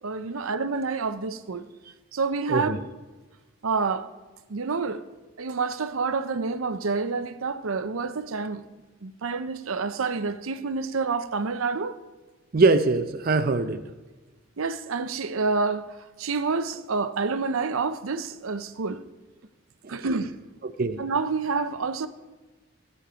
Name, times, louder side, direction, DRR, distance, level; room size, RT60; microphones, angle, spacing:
voice 1, 0.0-1.7 2.1-2.8 3.6-4.1 4.5-5.0 5.4-8.6 9.0-12.0 14.6-19.0 19.9-20.3 21.0-22.1, right 4 dB, 90° right, 0.7 m, -28 dB
voice 2, 2.5-2.8 12.5-13.8 19.8-20.0 20.6-21.0, right 3 dB, 45° right, 0.5 m, -22 dB
15.0 x 8.5 x 5.1 m
head